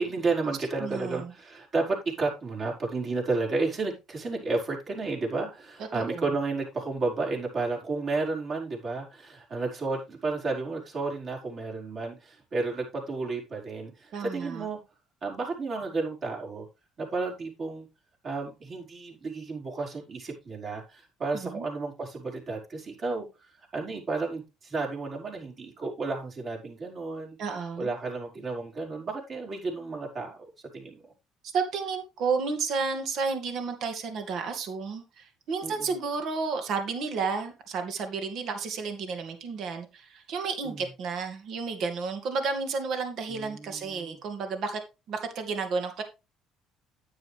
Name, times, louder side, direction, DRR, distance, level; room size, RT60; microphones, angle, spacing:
voice 1, 0.0-14.8 15.2-16.7 17.0-17.9 18.2-27.4 27.8-30.4 30.7-31.1 35.6-35.9 40.6-40.8 43.3-44.2, right 3 dB, 45° right, 0 dB, 5.5 m, -32 dB
voice 2, 0.8-1.3 5.9-6.2 14.1-14.7 21.3-21.7 27.4-27.9 31.4-44.8 45.1-46.0, right 5 dB, 65° right, 6 dB, 2.4 m, -32 dB
9.8 x 9.5 x 3.4 m, 0.26 s
supercardioid pair, 90°, 0 cm